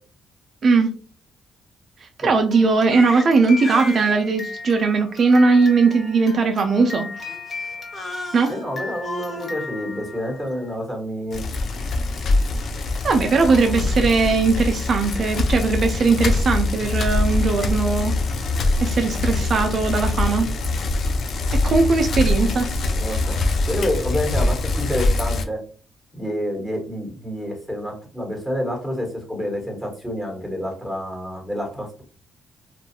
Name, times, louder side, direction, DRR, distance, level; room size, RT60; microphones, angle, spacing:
voice 1, 0.6-0.9 2.2-7.1 8.3-8.5 13.0-18.2 18.8-20.5 21.6-22.7, right 4 dB, 50° right, 4 dB, 0.4 m, -19 dB
Crying sobbing, 2.5-10.7, left 2 dB, 35° left, 0.8 m, -34 dB
voice 2, 8.5-11.4 13.3-13.7 22.9-23.4 23.7-25.6 26.1-32.0, equal, 10° left, 1 dB, 1.2 m, -28 dB
Bicycle, 11.3-25.4, left 2 dB, 60° left, 0.4 m, -23 dB
2.5 x 2.3 x 2.7 m, 0.38 s
cardioid pair, 90°, 0 cm